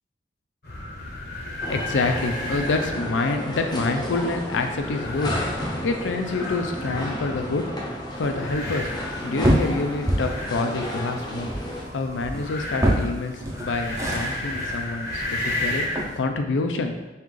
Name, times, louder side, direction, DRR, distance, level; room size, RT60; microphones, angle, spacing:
sound 1, 0.6-16.1, left 1 dB, 55° left, 0.8 m, -34 dB
voice 1, 1.5-5.3 5.8-7.6 8.2-8.9 9.2-11.5 11.9-15.8 16.2-17.0, left 3 dB, 85° left, 5 dB, 0.5 m, -27 dB
sound 2, 1.6-11.9, equal, 20° left, 0.6 m, -32 dB
sound 3, 9.0-16.2, equal, 15° right, 0.6 m, -28 dB
5.5 x 2.5 x 3.1 m, 1.1 s
head